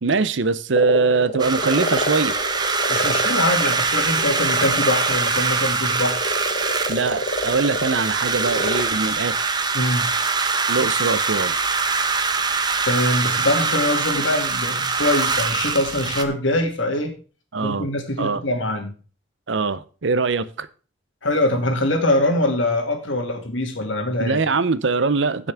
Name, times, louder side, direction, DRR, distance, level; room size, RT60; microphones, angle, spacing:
voice 1, 0.0-2.3 6.9-9.4 10.7-11.6 17.5-17.9 18.2-18.4 19.5-20.7 24.2-25.5, right 4 dB, 70° right, 0.7 m, -22 dB
sound 1, 0.7-8.9, left 2 dB, 45° left, 1.2 m, -28 dB
sound 2, 1.4-16.2, right 4 dB, 20° right, 0.9 m, -23 dB
voice 2, 2.9-6.2 9.7-10.1 12.9-17.1 17.6-18.9 21.2-24.4, left 1 dB, 80° left, 2.4 m, -23 dB
15.5 x 6.2 x 3.5 m
head